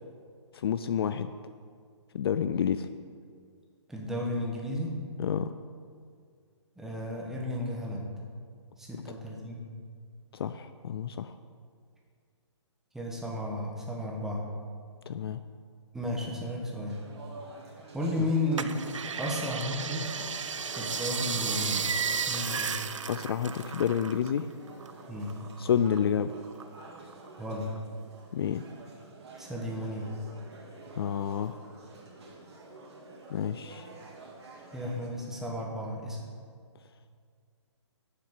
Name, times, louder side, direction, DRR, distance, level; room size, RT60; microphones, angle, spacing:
voice 1, 0.5-1.3 2.1-2.9 5.2-5.5 10.3-11.4 15.1-15.4 23.1-24.5 25.6-26.3 28.3-28.6 31.0-31.6 33.3-33.9, left 8 dB, 55° left, 11 dB, 0.4 m, -29 dB
voice 2, 3.9-5.0 6.8-8.1 8.8-9.7 12.9-14.4 15.9-17.0 17.9-18.7 19.2-20.1 20.7-21.9 22.3-22.7 25.1-25.3 27.4-27.7 29.4-30.1 34.7-36.2, left 1 dB, 5° right, -3 dB, 1.3 m, -33 dB
sound 1, 16.9-35.1, right 2 dB, 60° right, 2.1 m, -48 dB
sound 2, 18.6-24.4 24.7-26.0 26.4-27.3 27.8-27.9, right 6 dB, 85° right, 0.6 m, -33 dB
7.6 x 5.9 x 7.5 m, 2.1 s
hypercardioid pair, 145°, 16 cm